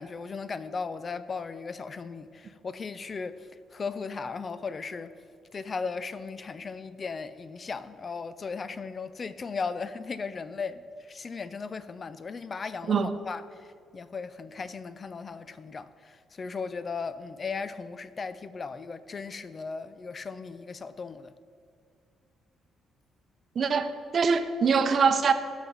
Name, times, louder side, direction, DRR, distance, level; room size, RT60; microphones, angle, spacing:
voice 1, 0.0-5.1 5.5-13.7 13.9-21.3, left 4 dB, 40° left, 0.5 m, -37 dB
voice 2, 23.6-25.3, right 5 dB, 50° right, 0.7 m, -23 dB
18.0 x 6.1 x 4.1 m
cardioid pair, 90°, 0 cm